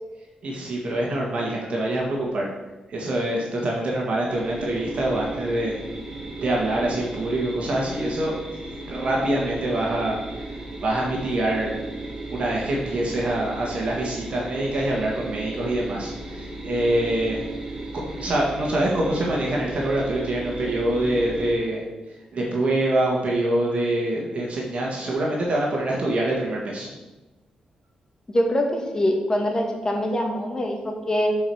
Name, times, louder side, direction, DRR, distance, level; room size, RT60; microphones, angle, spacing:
voice 1, 0.4-2.5 2.9-5.7 6.4-8.3 8.9-10.2 10.8-11.8 12.3-17.4 17.9-21.8 22.3-26.9, right 1 dB, 55° right, -3 dB, 1.8 m, -25 dB
sound 1, 4.3-21.5, right 2 dB, 30° right, 2.2 m, -35 dB
voice 2, 28.3-31.3, equal, 25° left, 2 dB, 1.8 m, -24 dB
7.7 x 4.9 x 6.3 m, 1.1 s
cardioid pair, 90°, 2 cm